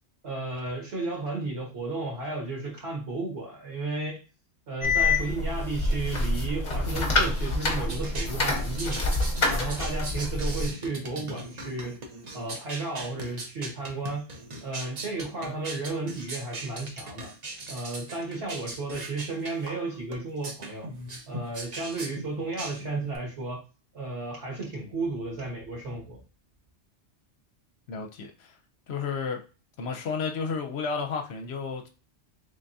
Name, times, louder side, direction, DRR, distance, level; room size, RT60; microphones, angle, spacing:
voice 1, 0.2-4.2 4.7-9.1 9.5-12.0 12.3-14.3 14.6-17.3 17.7-20.9 21.3-23.6 23.9-26.2, right 2 dB, 65° right, 1.6 m, -33 dB
sound 1, 4.8-10.7, left 2 dB, 40° left, 0.9 m, -27 dB
sound 2, 7.8-23.2, right 2 dB, 40° right, 0.7 m, -39 dB
voice 2, 27.9-28.6 28.9-29.4 29.8-31.9, left 5 dB, 65° left, 0.8 m, -32 dB
3.5 x 3.4 x 2.6 m
omnidirectional pair, 1.2 m